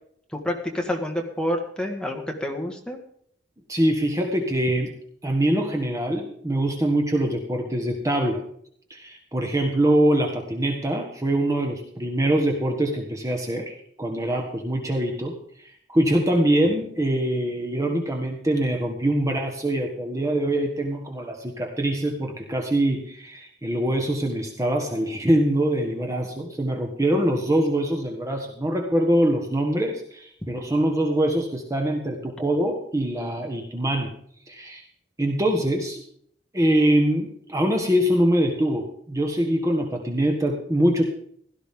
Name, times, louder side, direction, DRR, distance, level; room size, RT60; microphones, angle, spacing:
voice 1, 0.3-3.0, left 1 dB, 5° left, 2 dB, 1.9 m, -28 dB
voice 2, 3.7-4.9 5.2-8.4 8.9-34.1 34.5-34.8 35.2-36.0 36.5-41.1, right 1 dB, 20° right, 2 dB, 1.5 m, -24 dB
16.5 x 13.0 x 3.7 m, 0.64 s
head